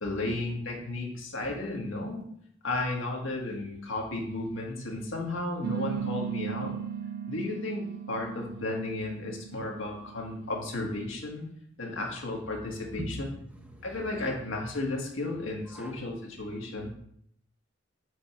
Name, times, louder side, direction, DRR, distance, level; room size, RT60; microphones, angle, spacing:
voice 1, 0.0-2.2 2.6-6.7 7.3-11.5 11.8-13.3 13.8-16.9, left 2 dB, 80° left, 0 dB, 1.6 m, -34 dB
sound 1, 5.6-10.6, right 8 dB, 55° right, 0.3 m, -37 dB
voice 2, 12.9-14.3 15.7-16.0 16.5-16.6, right 1 dB, 5° right, 2 dB, 0.9 m, -42 dB
5.1 x 4.4 x 4.9 m, 0.69 s
head